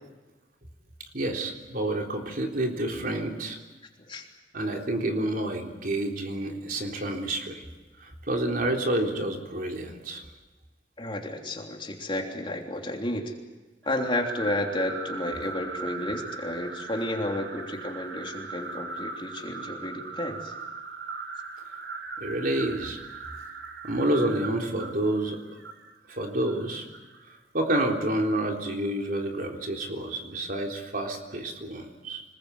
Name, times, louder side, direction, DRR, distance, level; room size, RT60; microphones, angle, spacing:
voice 1, 1.1-3.6 4.5-7.6 8.0-10.2 22.2-23.0 23.8-25.4 26.1-26.8 27.5-32.2, right 1 dB, 55° right, 1 dB, 3.7 m, -29 dB
voice 2, 11.0-13.3 13.8-20.5, left 1 dB, 30° left, 1 dB, 3.3 m, -32 dB
sound 1, 13.8-27.2, right 4 dB, 75° right, 2.4 m, -39 dB
26.5 x 20.5 x 8.3 m, 1.2 s
head